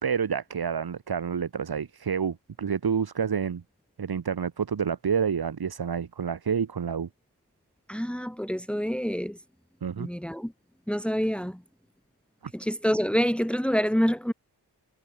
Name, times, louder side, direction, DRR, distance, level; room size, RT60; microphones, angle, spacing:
voice 1, 0.0-3.6 4.0-7.1 9.8-10.1 12.4-12.5, right 7 dB, 60° right, 1.6 m, -28 dB
voice 2, 7.9-9.4 10.0-10.5 10.9-11.6 12.5-14.3, equal, ahead, 3.7 m, -27 dB
cardioid pair, 65°, 42 cm